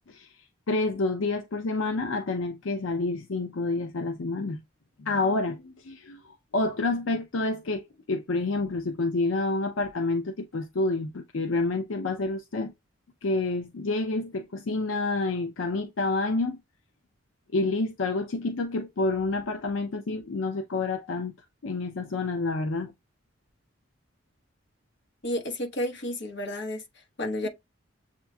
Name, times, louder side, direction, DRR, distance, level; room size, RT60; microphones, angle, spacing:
voice 1, 0.7-4.6 5.0-6.2 6.5-12.7 13.2-16.6 17.5-21.3 21.6-22.9, left 3 dB, 80° left, 0.6 m, -28 dB
voice 2, 25.2-27.5, left 1 dB, 60° left, 1.1 m, -32 dB
7.1 x 2.9 x 2.3 m
head